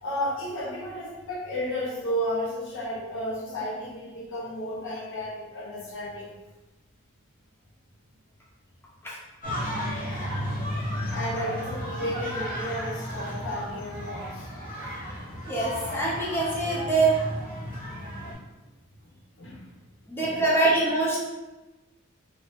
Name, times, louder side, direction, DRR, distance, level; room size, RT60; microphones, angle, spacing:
voice 1, 0.0-6.3 11.1-14.5 19.0-19.1 19.4-19.6 20.2-20.4, equal, 60° left, -4 dB, 0.8 m, -33 dB
sound 1, 9.4-18.3, equal, 40° left, 1.1 m, -33 dB
voice 2, 15.5-17.2 20.1-21.2, right 2 dB, 10° left, -7 dB, 0.6 m, -24 dB
2.7 x 2.6 x 3.4 m, 1.1 s
head